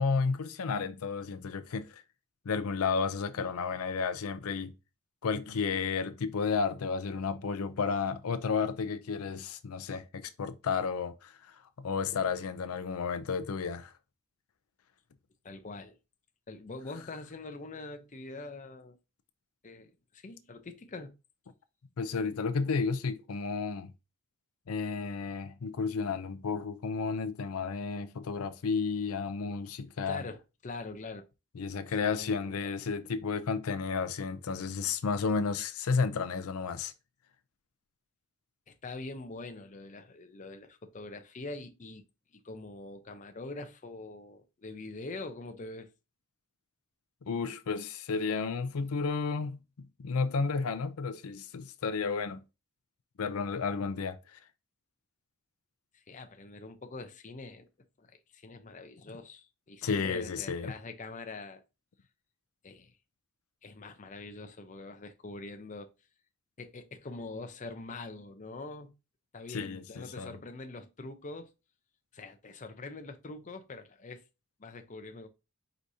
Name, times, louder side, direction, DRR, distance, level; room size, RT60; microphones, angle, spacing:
voice 1, 0.0-2.0 2.5-4.7 5.2-13.9 22.0-23.9 24.7-30.2 31.6-36.9 47.3-52.4 53.2-54.4 59.8-60.7 69.5-70.3, left 5 dB, 80° left, 0.5 m, -32 dB
voice 2, 15.4-16.0 16.5-19.0 19.6-21.1 30.1-31.3 31.9-32.7 38.7-42.0 42.4-45.9 55.9-57.7 58.0-61.6 62.6-62.9 63.6-65.9 66.6-68.9 69.3-71.5 72.1-74.2 74.6-75.3, left 3 dB, 35° left, 0.6 m, -44 dB
4.7 x 4.0 x 2.7 m
head